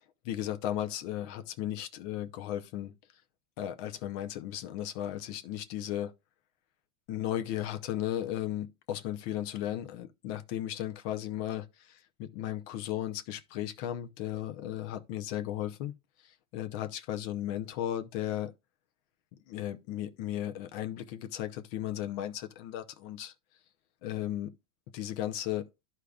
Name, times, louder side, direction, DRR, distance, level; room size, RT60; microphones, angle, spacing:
voice 1, 0.0-2.9 3.6-6.1 7.1-15.9 16.2-18.5 19.5-23.3 24.0-24.5 24.9-25.7, left 12 dB, 85° left, 1.6 m, -35 dB
13.0 x 4.9 x 2.3 m
omnidirectional pair, 2.2 m